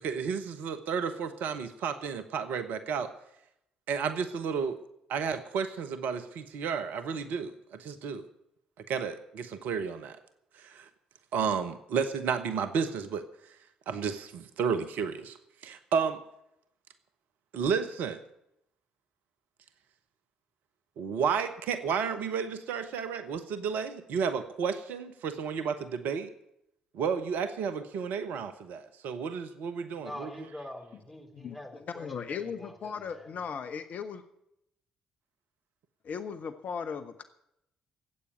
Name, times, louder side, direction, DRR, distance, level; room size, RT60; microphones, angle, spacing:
voice 1, 0.0-3.1 3.9-4.8 5.1-8.2 8.8-10.2 10.6-10.9 11.3-13.2 13.9-15.4 15.6-16.2 17.5-18.2 21.0-26.3 26.9-30.3, right 6 dB, 60° right, 10 dB, 1.0 m, -32 dB
voice 2, 30.0-33.4, left 1 dB, 5° left, 1 dB, 3.9 m, -45 dB
voice 3, 31.3-34.2 36.0-37.2, left 6 dB, 50° left, 9 dB, 0.9 m, -37 dB
14.0 x 8.5 x 9.3 m, 0.79 s
figure-of-eight pair, 40°, 4 cm